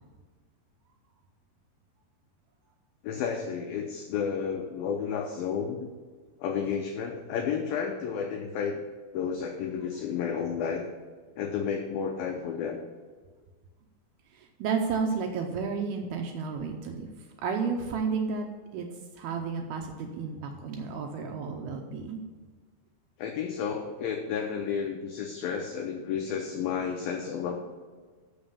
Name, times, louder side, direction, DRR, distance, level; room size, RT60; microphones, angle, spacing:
voice 1, 3.0-5.9 6.4-8.8 9.1-10.9 11.4-12.8 23.2-27.6, left 7 dB, 90° left, 3 dB, 2.0 m, -31 dB
voice 2, 14.3-17.1 17.4-18.5 18.7-18.9 19.2-22.2, right 5 dB, 80° right, 3 dB, 2.3 m, -32 dB
7.0 x 6.3 x 6.8 m, 1.5 s
omnidirectional pair, 5.0 m